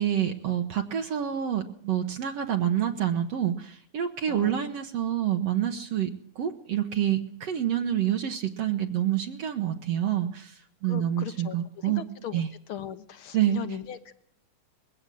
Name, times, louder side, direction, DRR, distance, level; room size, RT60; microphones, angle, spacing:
voice 1, 0.0-6.1 6.4-12.0 12.3-12.5 13.3-13.6, right 10 dB, 65° right, 5 dB, 2.0 m, -27 dB
voice 2, 4.3-4.7 10.8-11.6 11.8-12.4 12.7-14.1, left 9 dB, 55° left, 12 dB, 1.6 m, -38 dB
21.5 x 16.0 x 7.8 m, 0.62 s
omnidirectional pair, 3.5 m